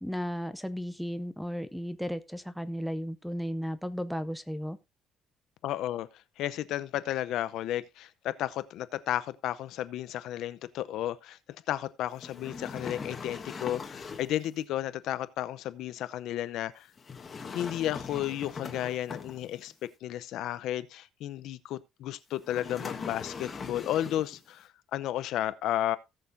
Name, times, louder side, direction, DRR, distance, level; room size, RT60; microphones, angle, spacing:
voice 1, 0.0-4.8, equal, ahead, 0.5 m, -34 dB
voice 2, 5.6-6.1 6.4-11.4 11.7-16.9 17.5-19.7 20.0-26.0, left 12 dB, 60° left, 0.7 m, -33 dB
sound 1, 12.2-14.4 17.0-19.7 22.4-24.4, left 5 dB, 25° left, 1.3 m, -40 dB
17.5 x 6.6 x 2.6 m
cardioid pair, 165°, 0 cm